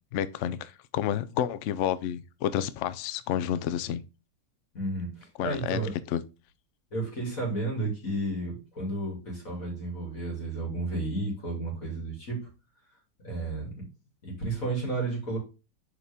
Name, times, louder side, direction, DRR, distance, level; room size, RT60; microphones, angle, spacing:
voice 1, 0.1-4.0 5.4-5.8 6.1-6.2, left 10 dB, 75° left, 0.6 m, -30 dB
voice 2, 4.7-5.9 6.9-12.5 13.2-13.8 14.2-15.4, right 2 dB, 50° left, 3.1 m, -32 dB
6.8 x 5.0 x 3.5 m
omnidirectional pair, 1.9 m